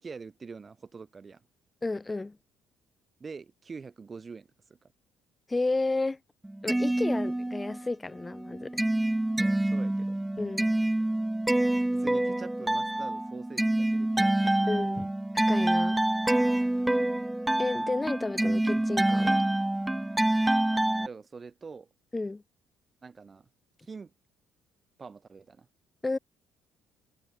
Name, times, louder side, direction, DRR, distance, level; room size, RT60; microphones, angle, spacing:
voice 1, 0.0-1.4 3.2-4.9 9.4-10.2 11.9-14.7 21.0-21.9 23.0-23.5 23.8-24.1 25.0-25.7, right 5 dB, 35° right, 3.4 m, -45 dB
voice 2, 1.8-2.4 5.5-6.2 6.6-8.8 10.4-10.7 14.7-16.0 17.6-19.4 22.1-22.4 26.0-26.2, left 2 dB, 20° left, 1.9 m, -32 dB
Rainy Day (Loop), 6.4-7.9 8.2-21.1, right 1 dB, 10° right, 1.0 m, -27 dB
hypercardioid pair, 55°, 0 cm